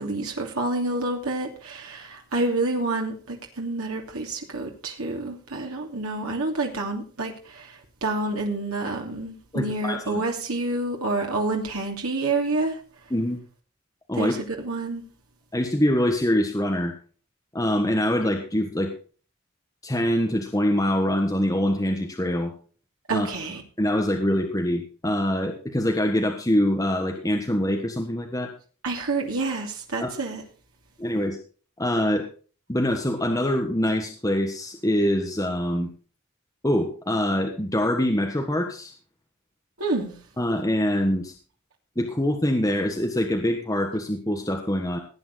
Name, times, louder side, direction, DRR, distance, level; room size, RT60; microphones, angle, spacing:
voice 1, 0.0-12.7 14.1-15.0 23.1-23.6 28.8-30.4 39.8-40.2, right 2 dB, 80° right, 2.8 m, -28 dB
voice 2, 9.5-10.2 13.1-13.4 14.1-14.3 15.5-16.9 17.5-18.9 19.8-22.5 23.1-23.3 23.8-28.5 30.0-30.1 31.0-31.4 31.8-32.3 32.7-35.9 36.6-38.9 40.4-41.3 42.0-45.0, left 1 dB, 15° left, 1.5 m, -24 dB
17.5 x 9.1 x 4.1 m
head